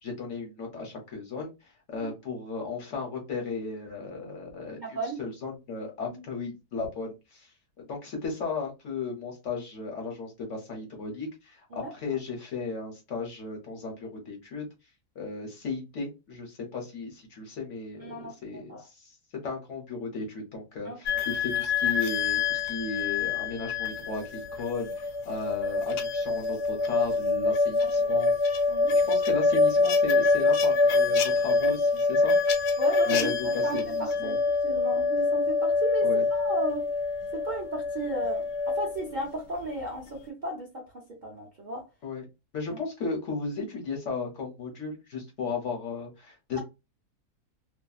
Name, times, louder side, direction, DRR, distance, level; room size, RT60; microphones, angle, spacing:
voice 1, 0.0-1.5 1.9-7.5 7.8-14.7 15.2-19.1 19.4-28.3 28.9-32.3 33.1-34.4 36.0-36.3 42.0-42.2 42.5-46.6, left 4 dB, 55° left, 1.0 m, -35 dB
voice 2, 4.8-5.2 6.1-6.2 11.7-11.9 18.0-18.8 20.8-21.0 27.8-28.2 28.7-28.9 32.8-34.4 34.6-36.8 37.3-40.9 41.2-41.9 42.7-42.8, right 2 dB, 50° right, 0.5 m, -35 dB
sound 1, 21.1-39.0, left 3 dB, 80° left, 1.1 m, -25 dB
2.6 x 2.5 x 2.3 m
omnidirectional pair, 1.7 m